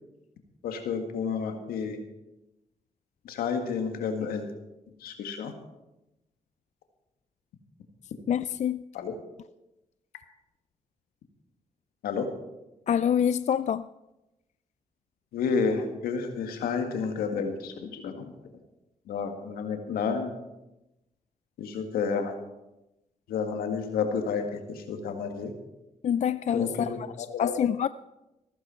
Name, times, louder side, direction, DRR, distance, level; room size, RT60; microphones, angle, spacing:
voice 1, 0.6-2.0 3.2-4.5 5.0-5.5 8.9-9.1 12.0-12.3 15.3-18.3 19.1-20.3 21.6-22.4 23.3-25.5 26.5-27.7, left 5 dB, 85° left, 5 dB, 1.8 m, -30 dB
voice 2, 8.3-8.8 12.9-13.9 26.0-26.9 27.4-27.9, left 8 dB, 50° left, 15 dB, 0.4 m, -26 dB
15.0 x 14.5 x 4.4 m, 0.96 s
supercardioid pair, 50°, 15 cm